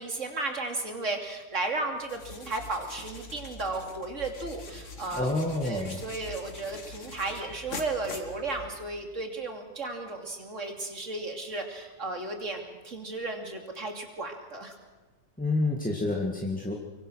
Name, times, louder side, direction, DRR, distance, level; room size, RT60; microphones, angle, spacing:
voice 1, 0.0-5.3 5.6-14.7, right 2 dB, 70° right, 3 dB, 3.3 m, -34 dB
sound 1, 2.0-9.0, left 3 dB, 70° left, 2.2 m, -44 dB
voice 2, 5.1-6.0 15.4-16.7, left 2 dB, 5° left, 0 dB, 1.8 m, -28 dB
Piano, 7.4-8.8 9.1-9.4, equal, 15° right, 3.6 m, -51 dB
24.5 x 24.0 x 6.4 m, 1.2 s
omnidirectional pair, 1.3 m